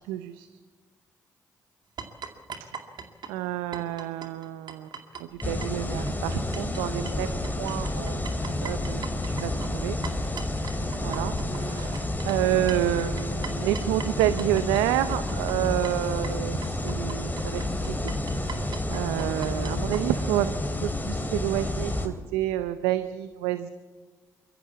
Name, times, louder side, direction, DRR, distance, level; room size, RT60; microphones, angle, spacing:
voice 1, 0.1-0.5 3.3-4.9 5.4-8.2 8.6-10.0 11.0-23.7, right 13 dB, 85° right, 12 dB, 0.6 m, -29 dB
sound 1, 2.0-6.8 7.0-20.0, right 6 dB, 60° right, 2.3 m, -40 dB
sound 2, 5.4-22.1, left 1 dB, 20° left, 3.4 m, -30 dB
23.0 x 14.0 x 8.5 m, 1.4 s
hypercardioid pair, 45°, 8 cm